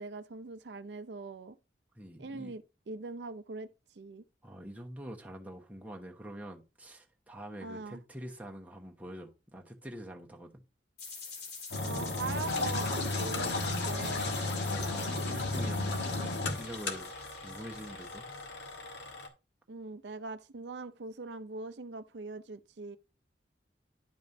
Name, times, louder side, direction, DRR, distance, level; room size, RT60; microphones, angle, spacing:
voice 1, 0.0-1.6 2.2-3.7 4.0-4.2 7.6-8.0 11.8-14.3 19.7-23.0, right 3 dB, 75° right, 0.5 m, -42 dB
voice 2, 1.9-2.5 4.4-10.6 14.7-17.1 17.4-18.2, equal, 10° right, 1.1 m, -45 dB
sound 1, 11.0-18.8, left 4 dB, 60° left, 3.7 m, -46 dB
Engine, 11.7-19.3, left 2 dB, 90° left, 1.4 m, -34 dB
11.0 x 5.2 x 2.7 m
head